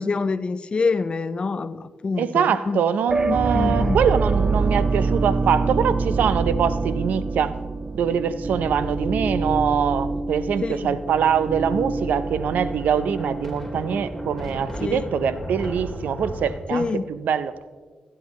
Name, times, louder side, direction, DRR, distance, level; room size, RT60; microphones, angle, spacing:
voice 1, 0.0-2.8 3.3-4.0 10.6-11.0 14.8-15.1 16.7-17.0, left 4 dB, 40° left, 0.4 m, -26 dB
voice 2, 2.2-7.6 7.9-17.5, right 7 dB, 80° right, 0.5 m, -23 dB
sound 1, 3.1-15.0, right 3 dB, 30° right, 0.5 m, -26 dB
Thunder, 11.1-16.6, equal, 5° right, 2.5 m, -36 dB
16.5 x 11.0 x 3.1 m
cardioid pair, 75°, 3 cm